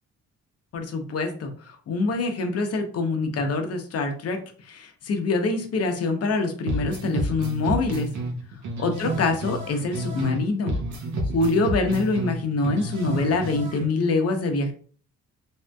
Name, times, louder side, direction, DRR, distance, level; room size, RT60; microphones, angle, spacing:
voice 1, 0.7-8.1 8.8-10.7 11.3-14.7, left 3 dB, 55° left, 5 dB, 0.8 m, -25 dB
sound 1, 6.7-10.4 10.7-13.9, right 1 dB, 70° right, 0.8 m, -30 dB
3.4 x 2.6 x 2.2 m, 0.43 s
cardioid pair, 90°, 30 cm